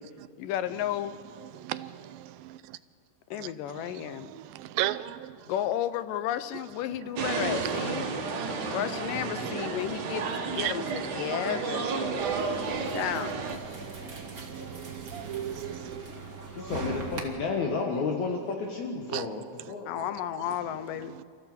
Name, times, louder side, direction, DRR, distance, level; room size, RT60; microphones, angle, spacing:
voice 1, 0.4-1.1 3.3-4.3 5.5-8.1 8.7-11.9 12.9-13.4 19.9-21.2, left 11 dB, 80° left, 2.3 m, -33 dB
voice 2, 1.4-2.8 3.3-5.5 6.9-7.1 7.6-7.9 9.4-9.7 10.4-11.4 12.0-16.1 19.1-19.3 19.6-20.1 20.3-20.6 21.0-21.2, right 14 dB, 85° right, 2.4 m, -38 dB
sound 1, 7.2-13.6, right 4 dB, 65° right, 3.2 m, -32 dB
sound 2, 12.2-17.2, right 3 dB, 30° right, 1.9 m, -40 dB
voice 3, 16.6-19.9, left 4 dB, 65° left, 2.5 m, -31 dB
28.5 x 14.5 x 7.5 m
omnidirectional pair, 4.0 m